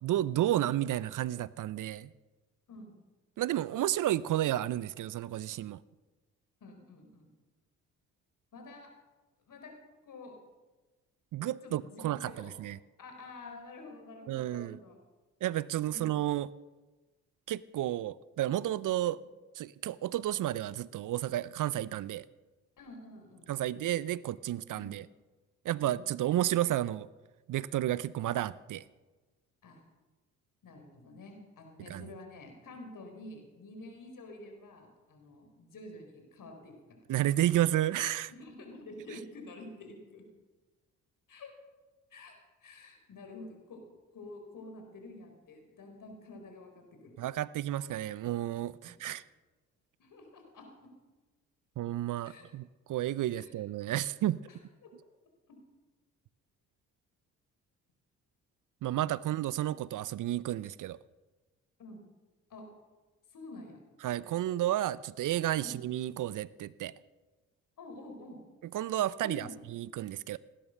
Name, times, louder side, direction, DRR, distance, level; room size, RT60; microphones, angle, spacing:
voice 1, 0.0-2.1 3.4-5.8 11.3-12.8 14.3-14.8 15.4-16.5 17.5-19.2 19.6-22.2 23.5-25.1 25.6-27.1 27.5-28.8 31.9-32.1 37.1-38.3 47.2-49.2 51.8-54.4 58.8-61.0 64.0-66.9 68.7-70.4, right 13 dB, 55° right, 20 dB, 0.6 m, -31 dB
voice 2, 6.6-7.3 8.5-8.9 9.5-9.7 10.0-10.4 11.6-12.5 13.0-15.0 15.9-16.2 22.8-23.8 24.7-25.0 25.8-26.0 29.6-29.8 30.6-37.0 38.3-40.2 41.3-41.5 42.1-42.3 42.6-43.8 44.1-47.2 48.8-49.0 50.0-50.9 52.2-52.5 53.3-53.5 54.5-54.9 61.8-62.0 62.5-62.6 63.3-63.8 65.6-65.7 67.8-68.4 69.2-69.5, left 2 dB, 55° left, 4 dB, 4.3 m, -49 dB
18.0 x 10.0 x 6.5 m, 1.2 s
hypercardioid pair, 50°, 37 cm